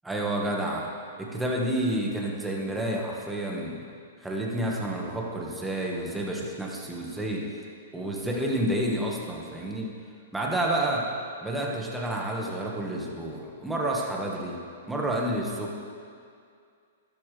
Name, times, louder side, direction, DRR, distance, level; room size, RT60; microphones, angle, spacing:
voice 1, 0.0-0.9 1.2-3.8 4.2-7.4 7.9-9.9 10.3-11.1 11.4-14.6 14.9-15.8, right 1 dB, 5° right, -2 dB, 1.8 m, -29 dB
13.5 x 12.0 x 3.5 m, 2.3 s
hypercardioid pair, 135°, 0 cm